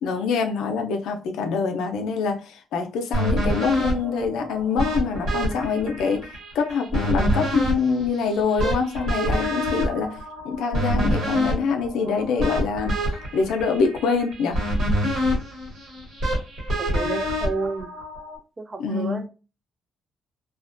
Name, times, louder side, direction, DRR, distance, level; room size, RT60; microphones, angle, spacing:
voice 1, 0.0-6.3 6.5-10.2 10.4-13.0 13.3-14.6 18.8-19.2, left 5 dB, 85° left, 0.5 m, -25 dB
sound 1, 3.1-18.4, equal, 70° right, 1.3 m, -26 dB
voice 2, 16.8-17.9 18.6-19.3, right 3 dB, 30° right, 0.4 m, -30 dB
2.4 x 2.1 x 2.5 m
cardioid pair, 90°, 0 cm